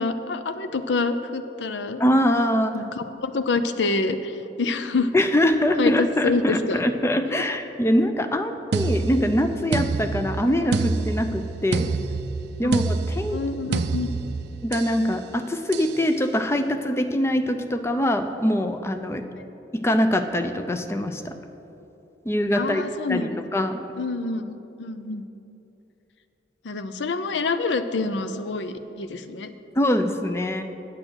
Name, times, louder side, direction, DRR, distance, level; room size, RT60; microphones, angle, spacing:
voice 1, 0.0-2.0 2.7-5.1 5.8-6.8 7.3-7.4 12.6-12.7 13.3-14.1 19.4-19.5 22.6-23.6 24.0-25.3 26.6-29.5, left 3 dB, 90° left, 10 dB, 0.5 m, -27 dB
voice 2, 2.0-2.8 5.1-11.9 12.6-13.4 14.6-19.2 19.7-21.3 22.2-22.8 23.1-23.9 29.8-30.6, equal, 15° left, 8 dB, 0.4 m, -23 dB
sound 1, 8.7-15.0 15.7-16.0, right 3 dB, 65° right, 0.4 m, -28 dB
8.6 x 7.5 x 6.3 m, 2.9 s
head